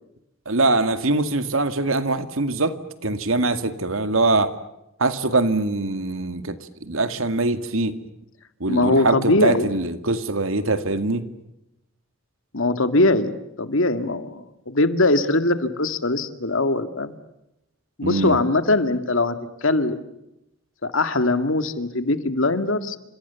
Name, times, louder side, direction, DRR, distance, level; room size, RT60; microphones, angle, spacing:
voice 1, 0.5-2.8 3.0-4.6 5.0-6.6 6.8-7.9 8.6-11.2 18.0-18.4, right 2 dB, 75° right, 10 dB, 2.1 m, -22 dB
voice 2, 8.7-9.7 12.5-17.2 18.0-19.4 19.6-20.0 20.8-23.0, left 2 dB, 70° left, 10 dB, 2.1 m, -21 dB
30.0 x 27.0 x 7.0 m, 0.88 s
head